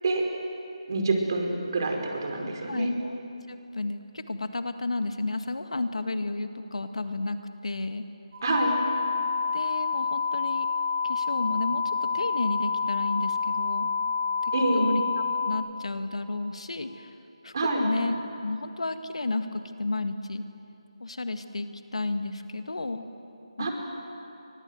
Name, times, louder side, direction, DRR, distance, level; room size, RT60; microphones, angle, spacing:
voice 1, 0.9-2.9 8.4-8.7 14.5-14.9 17.5-17.8 23.6-23.7, right 2 dB, 40° right, 2 dB, 4.9 m, -26 dB
voice 2, 2.4-3.2 3.5-7.4 7.6-8.0 9.5-10.7 11.0-13.9 14.4-15.0 15.5-17.1 17.4-20.4 21.0-23.0 23.6-23.7, left 2 dB, 75° left, 8 dB, 2.0 m, -32 dB
sound 1, 8.3-15.5, left 5 dB, 55° right, 6.6 m, -28 dB
30.0 x 24.5 x 8.0 m, 2.9 s
figure-of-eight pair, 165°, 3 cm